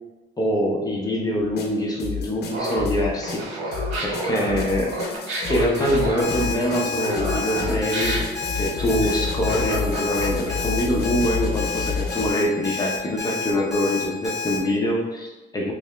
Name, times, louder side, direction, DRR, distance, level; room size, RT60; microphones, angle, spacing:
voice 1, 0.4-3.5 4.0-5.0 5.5-15.7, equal, 20° left, -2 dB, 0.6 m, -24 dB
sound 1, 1.4-12.3, left 5 dB, 60° left, 0.6 m, -30 dB
Laughter, 2.5-10.5, right 1 dB, 75° right, 1.4 m, -30 dB
Alarm, 6.2-14.6, left 5 dB, 5° right, 1.0 m, -30 dB
3.3 x 2.8 x 3.3 m, 1.2 s
cardioid pair, 135°, 19 cm